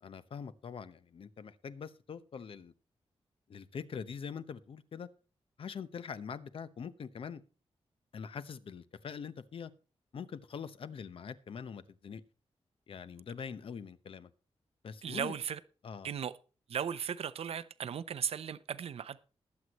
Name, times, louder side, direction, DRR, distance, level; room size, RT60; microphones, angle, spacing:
voice 1, 0.0-2.7 3.5-5.1 5.6-7.4 8.1-9.7 10.1-12.2 12.9-14.3 14.8-15.3 15.8-16.1, left 6 dB, 60° left, 0.9 m, -43 dB
voice 2, 15.0-15.6 16.0-16.3 16.7-19.2, right 8 dB, 70° right, 0.7 m, -36 dB
20.5 x 8.0 x 3.0 m
wide cardioid pair, 165°, 11 cm